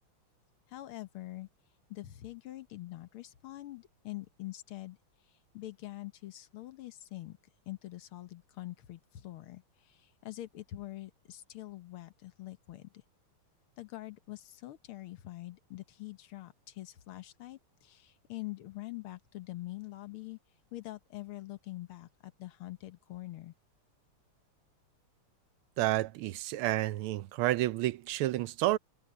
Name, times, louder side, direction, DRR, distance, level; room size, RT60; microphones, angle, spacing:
voice 1, 0.7-1.5 1.9-5.0 5.5-7.4 7.7-13.0 13.8-20.4 20.7-23.5, left 17 dB, 75° left, 1.8 m, -44 dB
voice 2, 25.8-28.8, right 16 dB, 80° right, 1.4 m, -30 dB
omnidirectional pair, 2.4 m